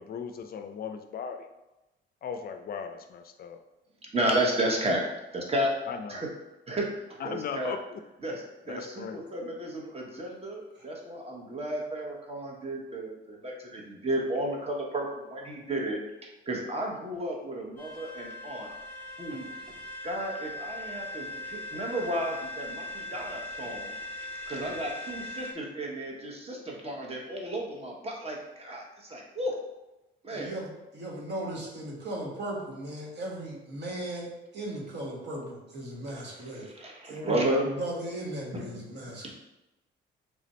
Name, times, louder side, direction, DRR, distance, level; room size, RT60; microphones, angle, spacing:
voice 1, 0.0-1.5 2.2-3.6 5.9-6.2 7.2-8.0 8.7-9.2, left 6 dB, 50° left, 7 dB, 0.4 m, -37 dB
voice 2, 4.1-5.0 5.3-5.7 6.1-6.3 6.7-6.9 7.2-7.7 8.2-16.0 16.5-18.7 19.2-19.5 20.0-24.0 24.5-29.5 30.2-30.5 36.6-37.7 38.5-38.8 39.2-39.3, right 1 dB, 30° right, -1 dB, 1.0 m, -32 dB
sound 1, 17.8-25.5, left 2 dB, 10° left, 0.8 m, -40 dB
voice 3, 30.3-34.3 34.5-36.7 37.0-39.3, right 1 dB, 60° right, -3 dB, 1.3 m, -37 dB
3.4 x 2.5 x 4.2 m, 0.98 s
cardioid pair, 90°, 20 cm